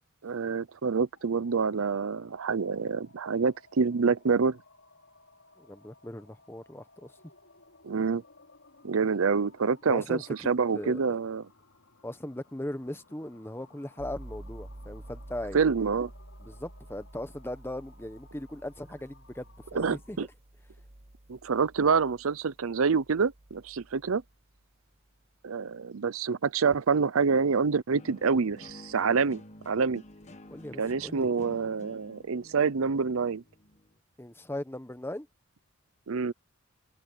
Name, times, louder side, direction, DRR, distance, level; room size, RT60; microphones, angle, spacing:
voice 1, 0.2-4.6 7.8-8.2 8.8-10.2 10.5-11.4 15.5-16.1 19.7-20.3 21.3-24.2 25.4-30.0 30.8-33.4 36.1-36.3, right 5 dB, 75° right, 0.6 m, -27 dB
sound 1, 1.1-20.5, left 3 dB, 70° left, 4.3 m, -60 dB
voice 2, 5.6-7.2 9.9-11.2 12.0-15.7 16.4-20.2 30.5-31.3 34.2-35.3, left 1 dB, 10° left, 1.1 m, -39 dB
sound 2, 14.0-24.6, right 1 dB, 30° right, 1.1 m, -49 dB
sound 3, 28.0-34.0, left 1 dB, 35° left, 1.3 m, -51 dB
head